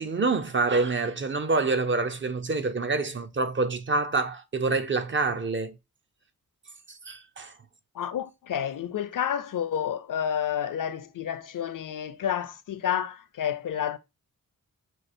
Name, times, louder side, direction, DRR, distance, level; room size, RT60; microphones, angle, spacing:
voice 1, 0.0-5.7 6.9-7.5, right 3 dB, 35° right, 0.5 m, -27 dB
voice 2, 7.9-14.0, left 9 dB, 60° left, 0.5 m, -30 dB
6.2 x 2.4 x 2.5 m
wide cardioid pair, 130°, 36 cm